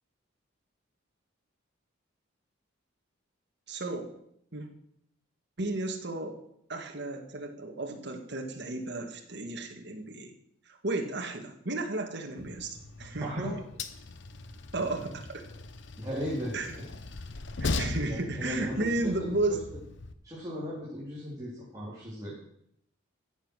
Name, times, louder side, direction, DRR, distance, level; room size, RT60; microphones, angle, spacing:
voice 1, 3.7-4.0 4.5-4.7 5.6-6.4 6.7-10.3 10.7-13.5 14.7-15.4 16.5-16.7 17.6-19.6, right 2 dB, 55° right, 3 dB, 1.9 m, -33 dB
Train, 12.4-20.1, left 3 dB, 55° left, 0.9 m, -39 dB
voice 2, 13.2-13.5 16.0-16.5 18.0-18.9 19.2-19.3 20.2-22.3, equal, 15° right, -7 dB, 3.3 m, -37 dB
14.5 x 7.5 x 6.4 m, 0.74 s
head